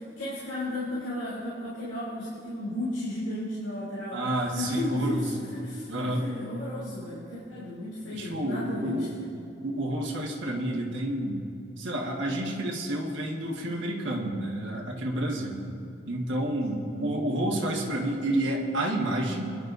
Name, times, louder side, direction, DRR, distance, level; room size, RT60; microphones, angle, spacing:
voice 1, 0.0-9.1 16.6-17.1, left 1 dB, 85° left, -9 dB, 3.1 m, -34 dB
voice 2, 4.1-5.3 5.9-6.2 8.1-9.2 9.6-11.4 11.8-15.6 16.0-19.6, right 1 dB, 85° right, -2 dB, 1.6 m, -29 dB
22.0 x 11.0 x 2.7 m, 2.6 s
head